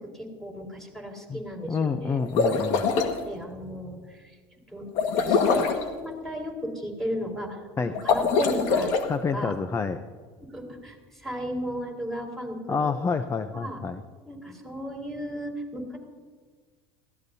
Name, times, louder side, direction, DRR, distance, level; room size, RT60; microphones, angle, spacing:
voice 1, 0.1-2.2 3.0-4.4 4.7-8.9 9.3-9.5 10.4-12.9 13.5-13.8 14.3-16.0, equal, ahead, 0 dB, 4.4 m, -35 dB
voice 2, 1.7-2.8 7.8-7.9 9.1-10.0 12.7-14.0, left 5 dB, 20° left, 10 dB, 0.7 m, -28 dB
sound 1, 2.2-3.1 4.9-5.8 7.9-9.0, left 5 dB, 65° left, 1.7 m, -23 dB
21.5 x 16.0 x 2.8 m, 1.5 s
supercardioid pair, 105°, 12 cm